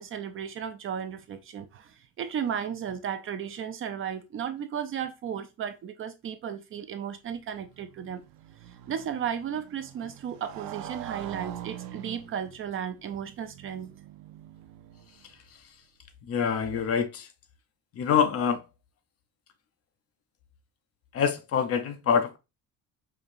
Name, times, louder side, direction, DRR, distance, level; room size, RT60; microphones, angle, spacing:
voice 1, 0.0-8.2 8.9-13.9, right 8 dB, 40° right, 0.4 m, -34 dB
Motorcycle, 7.3-15.4, right 11 dB, 80° right, 0.6 m, -44 dB
voice 2, 16.2-17.3 17.9-18.6 21.1-22.4, left 7 dB, 45° left, 0.6 m, -25 dB
5.0 x 2.8 x 2.5 m
cardioid pair, 180°, 34 cm